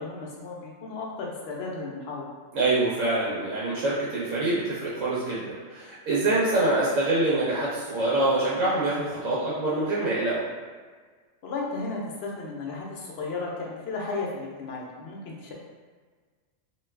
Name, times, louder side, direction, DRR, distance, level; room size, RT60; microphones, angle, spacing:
voice 1, 0.0-2.3 11.4-15.5, left 3 dB, 60° left, -2 dB, 0.8 m, -34 dB
voice 2, 2.5-10.5, right 2 dB, 80° right, -7 dB, 1.0 m, -25 dB
2.5 x 2.3 x 3.2 m, 1.5 s
omnidirectional pair, 1.3 m